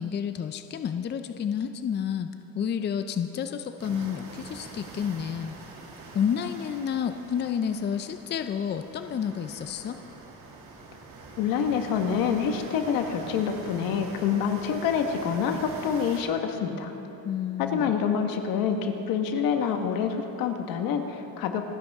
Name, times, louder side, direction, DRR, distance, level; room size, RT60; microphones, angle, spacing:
voice 1, 0.0-2.3 2.5-5.5 6.1-10.0 17.2-17.9, left 8 dB, 30° left, 8 dB, 0.5 m, -30 dB
sound 1, 3.8-16.2, right 3 dB, 60° right, 2.7 m, -44 dB
voice 2, 11.4-16.9 17.6-21.8, left 7 dB, 75° left, 5 dB, 1.5 m, -27 dB
27.5 x 10.0 x 3.6 m, 3.0 s
cardioid pair, 120°, 35 cm